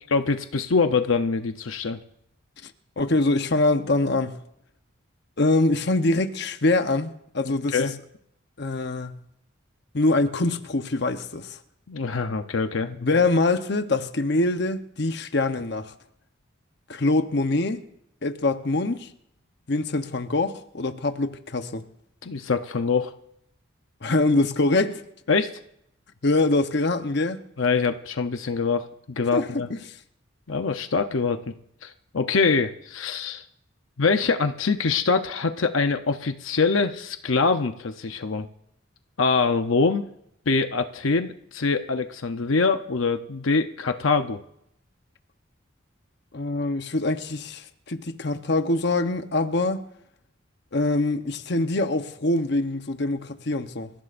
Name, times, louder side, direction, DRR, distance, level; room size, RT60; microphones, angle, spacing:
voice 1, 0.1-2.0 7.4-8.0 11.9-12.9 22.2-23.1 25.3-25.6 27.6-29.7 30.5-31.5 31.8-33.5 34.0-38.5 39.2-40.1 40.5-44.4, left 4 dB, 80° left, 0.8 m, -24 dB
voice 2, 3.0-4.4 5.4-7.8 8.6-9.2 9.9-11.6 12.9-15.9 16.9-17.8 18.2-19.1 19.7-21.8 24.0-25.0 26.2-27.4 29.3-29.5 46.3-49.8 50.7-53.9, left 2 dB, 55° left, 0.9 m, -24 dB
27.5 x 15.0 x 2.6 m
head